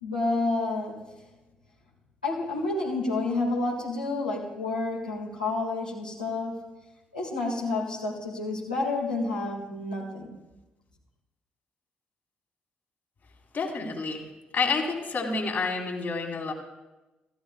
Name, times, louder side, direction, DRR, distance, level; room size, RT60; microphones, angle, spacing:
voice 1, 0.0-1.0 2.2-6.6 7.1-10.3, left 2 dB, 90° left, -6 dB, 1.8 m, -29 dB
voice 2, 13.5-14.2 14.5-16.5, left 4 dB, 50° left, 1 dB, 2.3 m, -29 dB
15.0 x 12.0 x 2.3 m, 1.0 s
figure-of-eight pair, 40°, 4 cm